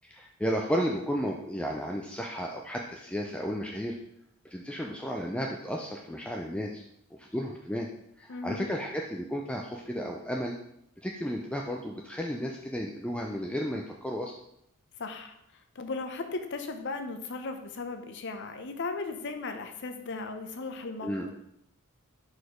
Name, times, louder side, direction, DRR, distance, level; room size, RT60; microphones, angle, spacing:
voice 1, 0.0-4.0 4.4-6.8 7.2-7.9 8.2-10.6 11.0-14.3 21.0-21.3, equal, 5° left, 0 dB, 0.4 m, -33 dB
voice 2, 8.3-8.7 15.0-15.4 15.7-21.3, left 3 dB, 50° left, 6 dB, 0.7 m, -36 dB
4.7 x 4.2 x 5.1 m, 0.76 s
head